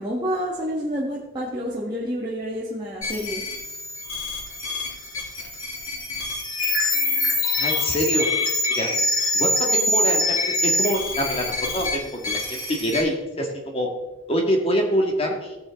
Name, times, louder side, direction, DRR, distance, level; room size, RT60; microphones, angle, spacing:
voice 1, 0.0-3.4, equal, 20° right, -6 dB, 1.5 m, -28 dB
sound 1, 3.0-13.0, left 2 dB, 85° left, 3.7 m, -25 dB
voice 2, 7.6-8.3 8.7-8.9 9.3-13.9 14.3-15.6, equal, 30° left, 1 dB, 1.9 m, -25 dB
17.5 x 6.2 x 3.7 m, 0.99 s
head